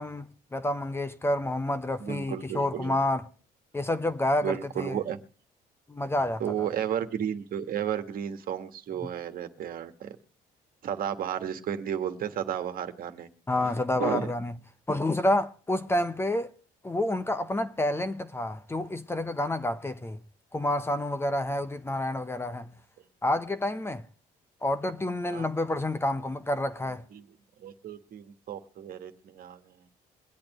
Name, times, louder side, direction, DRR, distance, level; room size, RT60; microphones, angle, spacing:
voice 1, 0.0-3.2 3.7-5.0 5.9-6.4 13.5-14.5 14.9-16.5 16.8-20.2 20.5-22.7 23.2-24.0 24.6-27.0, left 1 dB, 15° left, 0.9 m, -29 dB
voice 2, 2.0-2.9 4.4-5.2 6.4-10.2 10.8-13.3 14.0-14.3 25.3-25.5 27.1-27.3 27.6-29.9, right 9 dB, 60° right, 1.6 m, -33 dB
23.5 x 8.7 x 3.1 m
cardioid pair, 110°, 17 cm